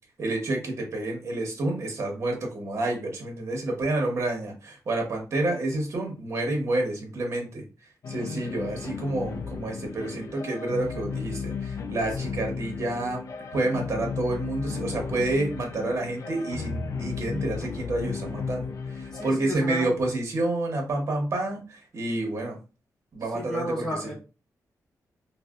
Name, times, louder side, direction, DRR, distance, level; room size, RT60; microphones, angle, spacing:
voice 1, 0.2-7.6 8.1-13.2 13.5-22.6 23.1-24.1, right 2 dB, 45° right, 1 dB, 1.1 m, -29 dB
sound 1, 8.0-19.3, left 5 dB, 55° left, 0.4 m, -34 dB
voice 2, 19.1-19.9 23.3-24.1, equal, 10° left, -4 dB, 1.0 m, -33 dB
4.0 x 2.1 x 2.3 m, 0.31 s
wide cardioid pair, 145°, 6 cm